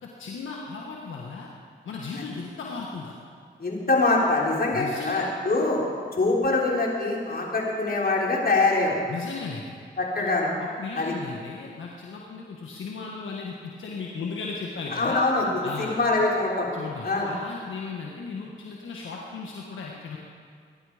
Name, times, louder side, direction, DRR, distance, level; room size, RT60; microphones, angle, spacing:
voice 1, 0.0-1.5 1.8-3.1 4.7-5.3 9.1-9.7 10.1-10.2 10.6-15.2 15.6-15.9 16.7-20.2, left 4 dB, 85° left, -2 dB, 1.5 m, -36 dB
voice 2, 3.6-5.8 6.2-9.0 10.0-10.5 10.9-11.1 14.9-15.5 15.8-16.7 17.0-17.3, left 3 dB, 50° left, -3 dB, 4.4 m, -24 dB
24.0 x 11.0 x 5.0 m, 2.1 s
cardioid pair, 45°, 20 cm